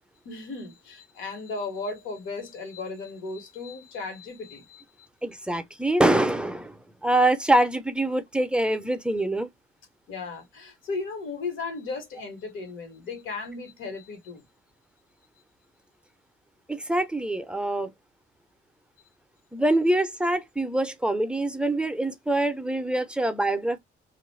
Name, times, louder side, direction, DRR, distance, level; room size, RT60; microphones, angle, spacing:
voice 1, 0.2-4.8 10.1-14.4, left 3 dB, 80° left, 1.2 m, -36 dB
voice 2, 5.2-9.5 16.7-17.9 19.5-23.8, right 1 dB, 5° right, 0.5 m, -24 dB
2.4 x 2.1 x 3.1 m
cardioid pair, 90°, 20 cm